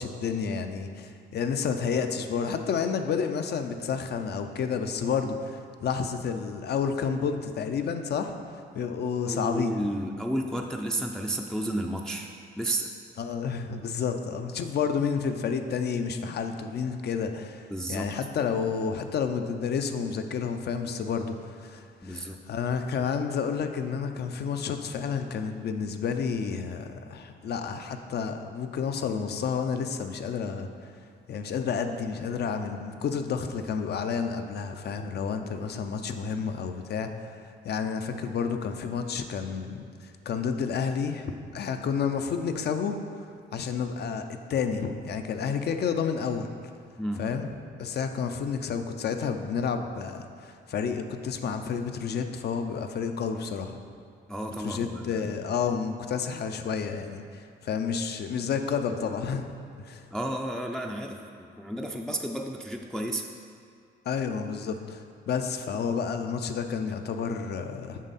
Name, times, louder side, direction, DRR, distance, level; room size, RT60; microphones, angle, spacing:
voice 1, 0.0-8.3 8.7-9.8 13.2-30.7 31.3-37.4 37.6-43.0 43.5-46.5 47.2-47.5 47.8-53.8 54.6-59.5 59.8-60.0 64.1-68.0, left 6 dB, 55° left, 7 dB, 0.6 m, -30 dB
voice 2, 9.3-12.3 12.6-12.9 17.7-18.2 22.0-22.4 47.0-47.3 54.3-55.4 60.1-63.2, right 1 dB, 5° left, 1 dB, 0.4 m, -32 dB
7.4 x 5.2 x 4.1 m, 2.3 s
cardioid pair, 90°, 20 cm